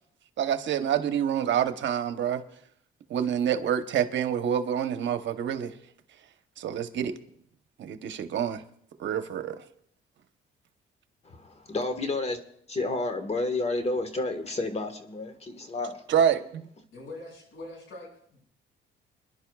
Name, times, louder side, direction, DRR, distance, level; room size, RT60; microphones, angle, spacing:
voice 1, 0.4-2.4 3.1-5.7 6.6-7.1 7.8-8.6 9.0-9.6 16.1-16.7, right 9 dB, 70° right, 1.0 m, -27 dB
voice 2, 11.2-12.4 12.7-16.0, left 2 dB, 30° left, 1.5 m, -30 dB
voice 3, 16.9-18.4, left 2 dB, 80° left, 6.4 m, -43 dB
26.0 x 11.0 x 2.4 m
cardioid pair, 90°, 20 cm